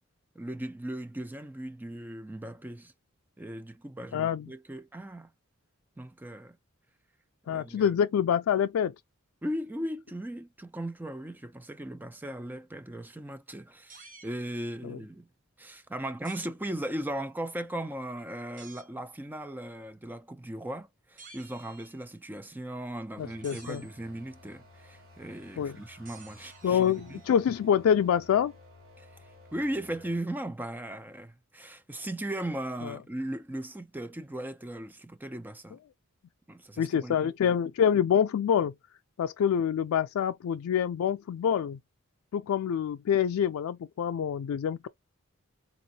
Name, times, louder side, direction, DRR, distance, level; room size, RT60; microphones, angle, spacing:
voice 1, 0.4-2.9 3.4-5.3 6.0-6.6 7.5-7.9 9.4-15.3 15.6-27.2 29.0-35.8 36.5-37.6, right 1 dB, 10° right, 0.3 m, -38 dB
voice 2, 4.1-4.5 7.5-8.9 14.8-15.0 23.2-23.8 25.6-25.8 26.6-28.5 32.8-33.0 36.8-38.7 39.2-41.8 42.3-44.9, left 8 dB, 85° left, 0.3 m, -26 dB
sound 1, 13.9-14.3 16.2-16.5 18.6-18.9 21.2-22.1 23.4-24.0 26.1-27.4, right 4 dB, 40° right, 1.1 m, -52 dB
sound 2, 23.2-30.2, left 1 dB, 70° right, 1.6 m, -54 dB
3.8 x 2.6 x 2.7 m
head